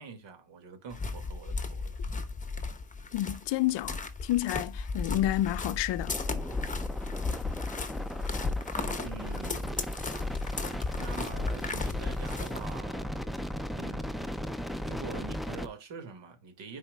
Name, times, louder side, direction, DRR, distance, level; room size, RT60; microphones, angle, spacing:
voice 1, 0.0-1.9 9.0-9.8 11.0-13.1 13.8-14.3 14.8-16.8, right 5 dB, 65° right, 2.1 m, -45 dB
sound 1, 0.9-12.8, left 4 dB, 15° left, 0.9 m, -35 dB
voice 2, 3.1-6.2, left 14 dB, 65° left, 0.6 m, -30 dB
glitch horseman, 6.1-15.7, equal, ahead, 0.3 m, -36 dB
9.9 x 4.7 x 2.3 m
cardioid pair, 90°, 47 cm